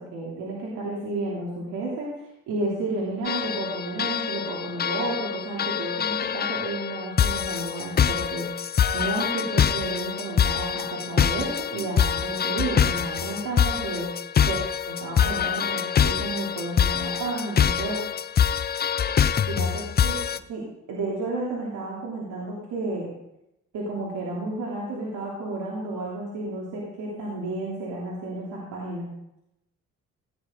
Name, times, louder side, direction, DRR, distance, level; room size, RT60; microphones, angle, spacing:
voice 1, 0.0-2.1 2.5-8.6 8.9-14.1 14.4-14.6 14.9-18.0 19.5-20.2 20.5-20.6 20.9-23.1 23.7-29.1, right 2 dB, 80° right, -5 dB, 3.3 m, -31 dB
sound 1, 3.2-20.4, left 8 dB, 35° left, 0.5 m, -25 dB
16.5 x 9.4 x 3.9 m, 0.84 s
cardioid pair, 90°, 30 cm